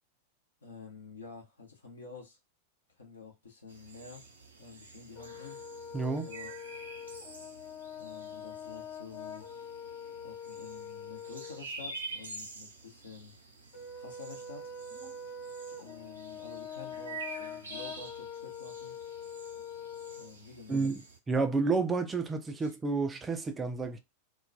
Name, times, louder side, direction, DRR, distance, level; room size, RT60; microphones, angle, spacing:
voice 1, 0.6-2.4 3.0-4.2 4.6-5.6 6.2-6.5 8.0-9.5 10.2-13.3 13.9-14.7 15.6-19.0 20.1-21.0 22.6-22.7, left 4 dB, 75° left, 0.8 m, -49 dB
sound 1, 3.7-21.2, right 3 dB, 75° right, 0.5 m, -48 dB
Brass instrument, 5.1-11.6 13.7-20.3, left 5 dB, 45° left, 0.5 m, -44 dB
voice 2, 5.9-6.3 20.7-21.0 21.3-24.0, right 4 dB, 15° right, 0.3 m, -30 dB
2.2 x 2.1 x 2.6 m
figure-of-eight pair, 90°, 0 cm